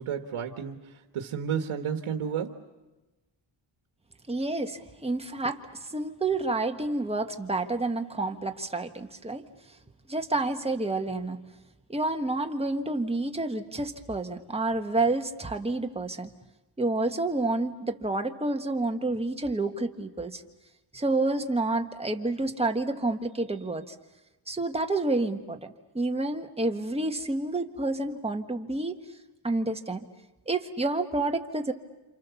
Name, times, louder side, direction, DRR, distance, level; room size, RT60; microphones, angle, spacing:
voice 1, 0.0-2.6, right 7 dB, 75° right, 5 dB, 1.6 m, -32 dB
voice 2, 4.3-9.4 10.1-11.4 11.9-16.3 16.8-20.4 20.9-23.9 24.5-29.0 29.4-30.0 30.5-31.7, right 2 dB, 10° right, 4 dB, 1.5 m, -29 dB
29.5 x 27.5 x 7.1 m, 1.1 s
wide cardioid pair, 110°, 50 cm